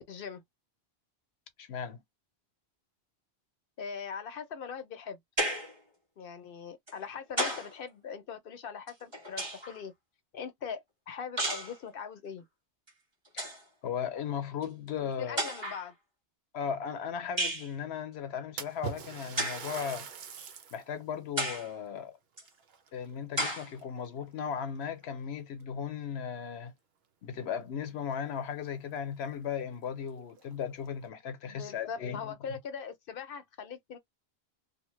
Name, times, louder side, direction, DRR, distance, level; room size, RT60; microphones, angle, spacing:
voice 1, 0.1-0.4 3.8-5.2 6.2-9.9 10.3-12.5 15.0-15.9 31.5-34.0, left 6 dB, 65° left, 0.8 m, -41 dB
voice 2, 1.6-2.0 13.3-13.5 13.8-15.4 16.5-20.1 20.7-22.1 22.9-26.7 27.2-32.3, left 7 dB, 85° left, 1.0 m, -36 dB
sound 1, 5.4-5.8 6.9-7.8 8.9-9.8 11.4-11.8 12.9-13.0 13.3-13.6 14.6-14.7 15.4-15.9 17.4-17.7 19.4-19.7 20.4-20.5 21.4-21.7 22.4-22.5 23.4-23.7, right 1 dB, 25° right, 1.3 m, -33 dB
Splash splatter, 18.6-20.9 21.4-21.5 22.4-23.4 23.8-24.2 25.0-25.1 25.6-25.7 27.9-28.0 28.3-28.4 29.0-29.1 29.5-29.6 30.3-30.9, right 7 dB, 75° right, 0.9 m, -43 dB
2.9 x 2.1 x 3.1 m
omnidirectional pair, 1.1 m